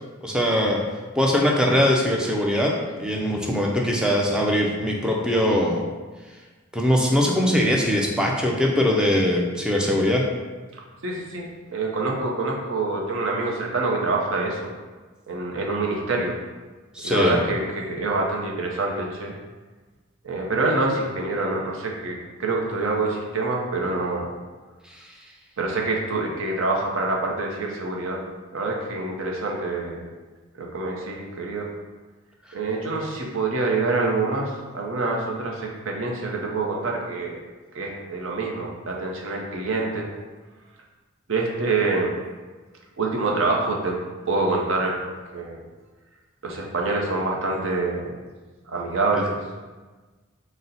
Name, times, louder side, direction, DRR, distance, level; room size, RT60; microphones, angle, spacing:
voice 1, 0.2-0.8 1.2-2.7 3.0-5.8 6.7-10.2 16.9-17.4, left 1 dB, 5° right, -1 dB, 0.4 m, -21 dB
voice 2, 10.7-14.7 15.3-16.3 17.0-19.3 20.2-24.3 25.6-28.2 28.5-30.1 30.6-31.7 32.5-37.4 37.7-40.1 41.3-42.2 43.0-44.0 44.3-45.0 45.3-45.6 46.4-48.2 48.7-49.4, right 3 dB, 60° right, -1 dB, 0.6 m, -26 dB
4.0 x 2.1 x 3.9 m, 1.3 s
head